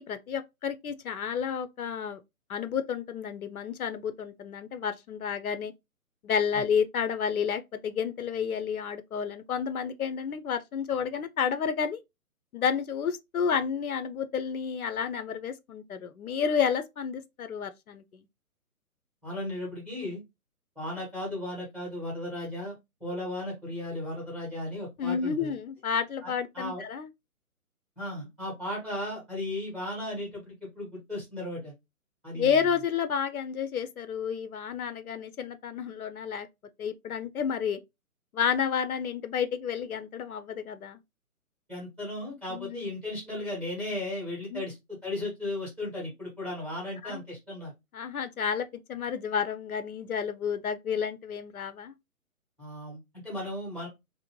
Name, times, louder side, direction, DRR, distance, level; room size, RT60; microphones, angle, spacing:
voice 1, 0.0-2.2 2.5-5.7 6.2-12.0 12.5-18.0 25.0-27.1 32.3-36.5 36.8-37.8 38.3-41.0 42.5-42.9 44.5-44.6 47.0-47.2 47.9-51.9, left 7 dB, 70° left, 0.5 m, -30 dB
voice 2, 19.2-20.2 20.8-22.7 23.0-25.5 26.2-26.8 28.0-31.7 32.2-32.6 41.7-44.8 45.0-47.7 52.6-53.9, left 1 dB, 5° right, 0.6 m, -36 dB
2.6 x 2.0 x 3.0 m
figure-of-eight pair, 140°, 45 cm